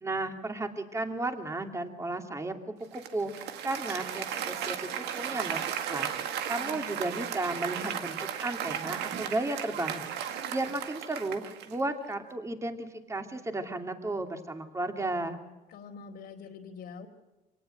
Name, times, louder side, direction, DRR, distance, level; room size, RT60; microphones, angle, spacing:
voice 1, 0.0-2.5 2.9-6.1 6.5-15.4, right 2 dB, 15° right, 5 dB, 2.6 m, -34 dB
Applause, 2.9-11.9, right 9 dB, 85° right, 1.9 m, -35 dB
voice 2, 6.6-7.2 15.7-17.1, left 6 dB, 70° left, -1 dB, 2.7 m, -46 dB
24.5 x 18.5 x 7.7 m, 1.1 s
cardioid pair, 110°, 17 cm